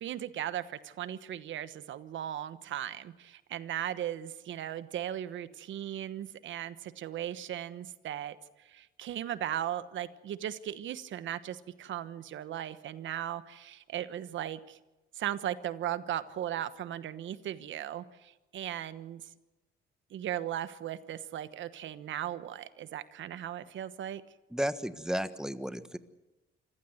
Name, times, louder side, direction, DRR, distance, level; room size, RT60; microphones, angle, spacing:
voice 1, 0.0-14.8 15.1-19.2 20.1-24.2, right 11 dB, 70° right, 14 dB, 1.2 m, -37 dB
voice 2, 24.5-26.0, equal, 5° right, 12 dB, 1.4 m, -33 dB
27.0 x 15.5 x 8.0 m, 1.1 s
cardioid pair, 90°, 20 cm